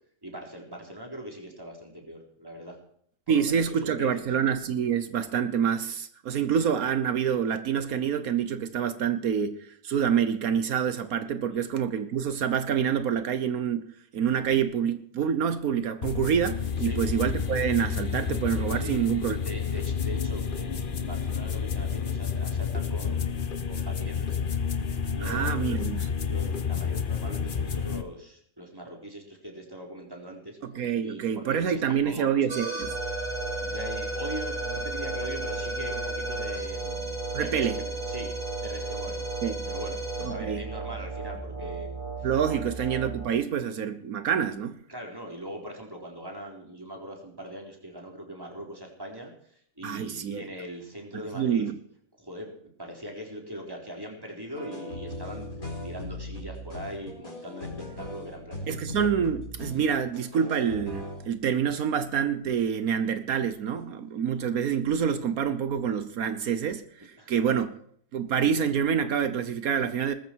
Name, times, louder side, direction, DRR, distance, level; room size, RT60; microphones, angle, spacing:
voice 1, 0.2-2.8 3.3-4.4 11.5-11.6 16.8-17.0 18.8-19.1 19.4-24.4 25.1-25.8 26.2-30.6 31.0-32.3 33.1-38.3 38.6-39.2 39.6-42.7 44.9-49.3 49.8-51.7 52.2-52.5 52.8-55.5 55.8-58.9 67.2-67.4, equal, 15° right, 4.0 m, -41 dB
voice 2, 3.3-19.4 25.2-26.1 30.6-33.0 37.3-37.8 39.4-39.6 40.2-40.6 42.2-44.8 49.8-50.5 51.3-51.8 58.7-67.8 68.1-70.1, right 8 dB, 80° right, 1.5 m, -27 dB
sound 1, 16.0-28.0, left 6 dB, 40° left, 1.1 m, -30 dB
sound 2, 32.5-43.3, right 3 dB, 65° right, 6.2 m, -33 dB
sound 3, 54.6-61.3, left 1 dB, 80° left, 4.7 m, -38 dB
20.0 x 14.5 x 4.7 m
omnidirectional pair, 1.5 m